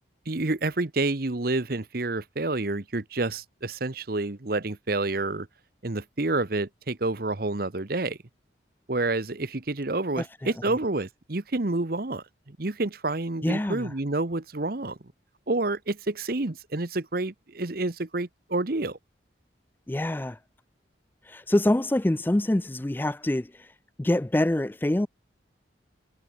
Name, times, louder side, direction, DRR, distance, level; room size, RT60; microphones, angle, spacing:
voice 1, 0.3-5.5 5.8-8.2 8.9-15.0 15.5-19.0, right 2 dB, 50° right, 1.1 m, -29 dB
voice 2, 10.2-10.5 13.4-13.9 19.9-20.4 21.2-23.7 24.0-25.1, left 1 dB, 10° left, 0.4 m, -25 dB
head